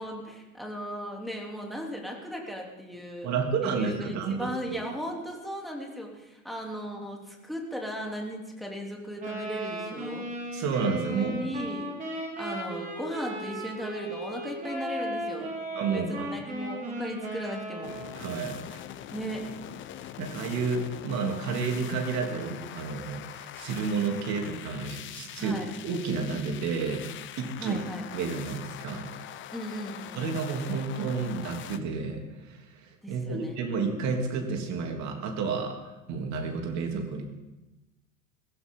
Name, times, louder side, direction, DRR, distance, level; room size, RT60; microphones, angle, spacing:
voice 1, 0.0-10.3 11.2-12.0 12.4-17.9 19.1-19.4 25.4-25.7 27.6-28.0 29.5-30.3 33.0-33.6, equal, ahead, -1 dB, 3.4 m, -37 dB
voice 2, 3.2-4.8 10.5-11.5 15.7-16.4 18.1-18.8 20.2-25.6 25.8-27.0 27.4-27.8 28.1-29.1 30.1-35.8 36.1-37.2, right 5 dB, 40° right, 3 dB, 3.3 m, -31 dB
Wind instrument woodwind instrument, 9.2-18.2, right 1 dB, 20° right, 5.1 m, -36 dB
sound 1, 17.8-31.8, left 11 dB, 30° left, 0.9 m, -43 dB
22.0 x 15.5 x 3.9 m, 1.0 s
hypercardioid pair, 95°, 41 cm